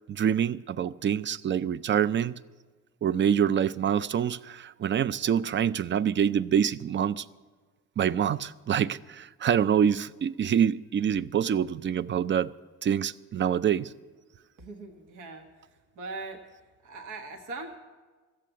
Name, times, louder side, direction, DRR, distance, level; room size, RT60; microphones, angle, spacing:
voice 1, 0.1-2.4 3.0-7.3 8.0-12.5 12.8-13.9, right 8 dB, 40° right, 0.4 m, -26 dB
voice 2, 14.6-15.5 15.9-16.4 16.8-17.8, right 3 dB, 85° right, 1.4 m, -40 dB
14.0 x 7.6 x 9.1 m
cardioid pair, 90°, 30 cm